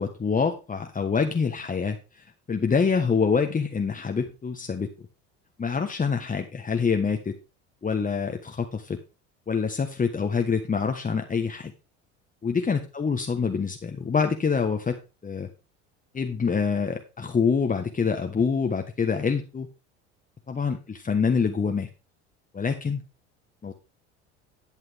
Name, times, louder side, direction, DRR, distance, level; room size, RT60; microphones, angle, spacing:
voice 1, 0.0-2.0 2.5-4.9 5.6-7.4 7.8-9.0 9.5-11.7 12.4-15.0 15.2-15.5 16.1-19.7 20.5-21.9 22.5-23.0 23.6-23.7, left 5 dB, 25° left, 4 dB, 1.4 m, -26 dB
11.5 x 9.0 x 3.6 m, 0.29 s
hypercardioid pair, 70°, 34 cm